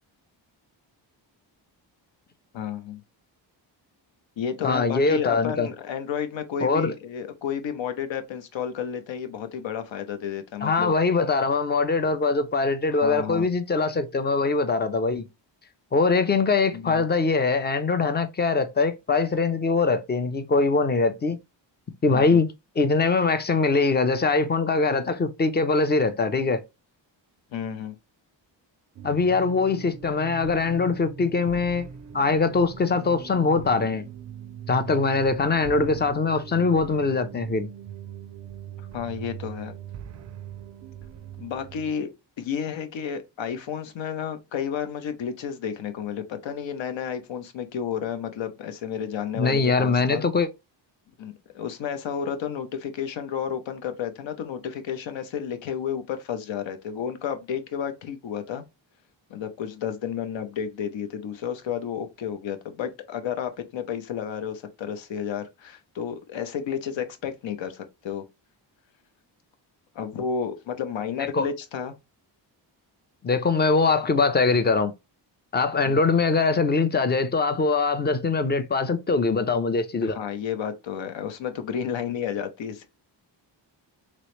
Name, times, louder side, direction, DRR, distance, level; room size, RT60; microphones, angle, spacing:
voice 1, 2.5-3.0 4.4-10.9 12.9-13.5 16.7-17.0 22.1-22.4 27.5-28.0 38.9-39.8 41.4-42.1 42.4-50.2 51.2-58.6 59.3-68.2 69.9-71.9 75.8-76.0 80.0-82.9, left 8 dB, 75° left, 0.8 m, -31 dB
voice 2, 4.6-5.7 6.6-6.9 10.6-15.3 15.9-21.4 22.0-22.5 22.8-26.6 29.0-31.9 32.1-34.0 34.7-37.7 49.3-50.5 71.3-71.5 73.2-74.9 75.5-80.2, left 4 dB, 25° left, 0.4 m, -22 dB
sound 1, 28.9-41.9, right 8 dB, 40° right, 0.4 m, -41 dB
3.1 x 3.0 x 3.0 m
cardioid pair, 115°, 46 cm